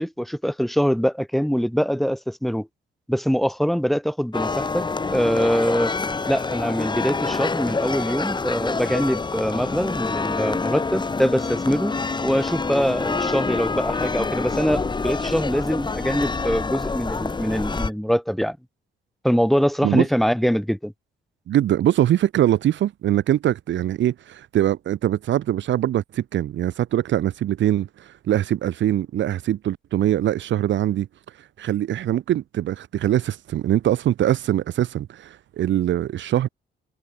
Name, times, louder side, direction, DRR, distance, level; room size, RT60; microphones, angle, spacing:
voice 1, 0.0-2.7 3.1-4.9 5.1-5.9 6.3-11.9 12.2-18.6 19.2-20.9, equal, ahead, 5.6 m, -23 dB
sound 1, 4.3-17.9, left 4 dB, 25° left, 4.2 m, -27 dB
voice 2, 21.5-31.1 31.6-36.5, right 12 dB, 75° right, 2.6 m, -22 dB
cardioid pair, 135°, 19 cm